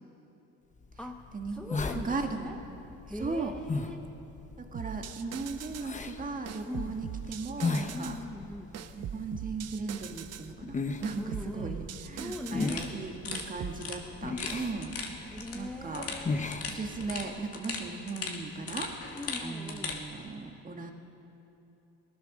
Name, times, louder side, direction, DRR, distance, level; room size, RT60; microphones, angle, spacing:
sound 1, 0.8-17.4, left 3 dB, 25° left, 1.0 m, -38 dB
voice 1, 1.0-2.6 3.1-4.0 6.6-7.0 7.9-8.7 11.2-12.9 15.2-16.6 19.1-20.0, left 1 dB, 5° left, 3 dB, 0.7 m, -42 dB
voice 2, 1.9-2.5 3.2-3.5 4.6-8.2 8.9-15.0 15.5-16.1 16.7-20.9, right 4 dB, 25° right, 4 dB, 1.6 m, -37 dB
sound 2, 4.7-5.9 6.5-8.2 8.7-10.5 11.0-12.8 13.3-13.8, right 9 dB, 55° right, 0.9 m, -41 dB
sound 3, 12.6-20.0, left 4 dB, 50° left, 2.1 m, -40 dB
18.5 x 12.0 x 6.5 m, 2.9 s
supercardioid pair, 90°, 31 cm